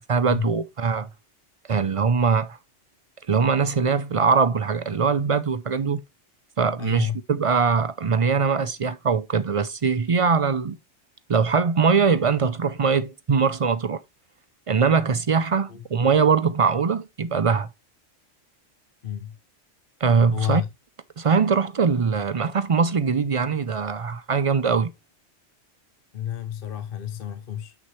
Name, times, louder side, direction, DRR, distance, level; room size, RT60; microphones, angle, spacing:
voice 1, 0.1-1.1 1.7-2.6 3.3-6.0 6.6-10.8 11.3-14.0 14.7-17.7 20.0-20.6 21.2-24.9, right 5 dB, 50° right, 0.4 m, -22 dB
voice 2, 6.8-7.2 15.7-15.8 19.0-19.4 20.3-20.7 26.1-27.7, left 10 dB, 55° left, 0.8 m, -30 dB
8.4 x 6.4 x 3.1 m
omnidirectional pair, 1.3 m